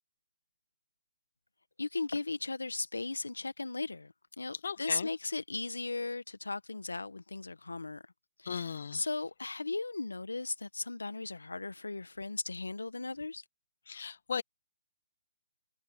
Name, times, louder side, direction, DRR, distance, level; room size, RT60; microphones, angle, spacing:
voice 1, 1.8-8.0 8.4-13.4, left 3 dB, 85° left, 1.4 m, -37 dB
voice 2, 4.6-5.1 8.4-9.1 13.9-14.4, left 6 dB, 65° left, 1.4 m, -37 dB
figure-of-eight pair, 140°, 0 cm